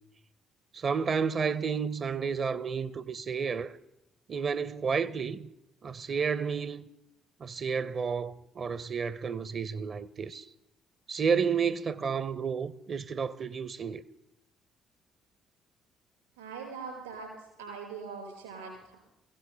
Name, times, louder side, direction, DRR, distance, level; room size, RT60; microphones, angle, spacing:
voice 1, 0.7-3.8 4.3-5.5 5.8-6.8 7.4-10.5 11.1-14.0, right 6 dB, 45° right, 0.6 m, -31 dB
voice 2, 16.3-19.0, right 5 dB, 80° right, 5.1 m, -42 dB
20.5 x 15.5 x 3.4 m
figure-of-eight pair, 45°, 0 cm